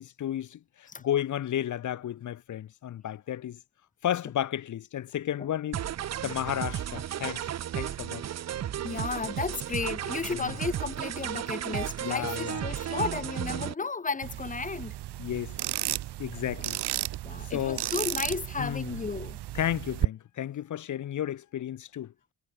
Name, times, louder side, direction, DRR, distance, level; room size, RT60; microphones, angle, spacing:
voice 1, 0.0-3.6 4.0-5.9 6.2-7.4 7.7-8.3 10.3-10.6 12.0-12.7 15.2-16.8 17.4-17.9 18.6-19.0 19.5-22.1, left 11 dB, 45° left, 1.2 m, -33 dB
sound 1, 5.7-13.7, right 11 dB, 40° right, 0.9 m, -34 dB
voice 2, 8.8-14.9 17.2-19.4, left 4 dB, 20° left, 2.7 m, -33 dB
sound 2, 14.2-20.1, right 15 dB, 70° right, 2.1 m, -33 dB
cardioid pair, 160°, 42 cm